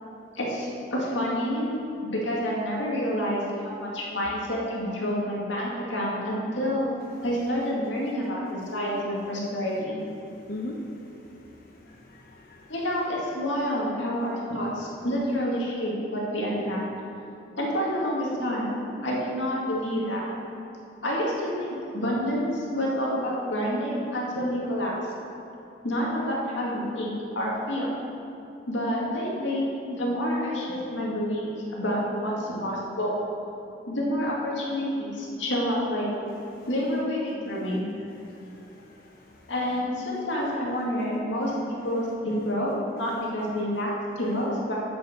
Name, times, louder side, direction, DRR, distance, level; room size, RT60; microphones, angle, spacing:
voice 1, 0.3-1.7 2.0-6.9 7.2-10.0 12.7-16.8 17.6-20.2 21.0-24.9 25.8-27.1 27.4-27.9 28.7-33.2 33.9-36.1 36.7-37.8 39.5-42.7 43.0-44.8, equal, 85° left, -4 dB, 2.2 m, -28 dB
voice 2, 10.3-12.7 36.5-36.7 38.1-39.5, left 1 dB, 50° left, -1 dB, 0.7 m, -42 dB
8.3 x 5.9 x 6.7 m, 2.9 s
head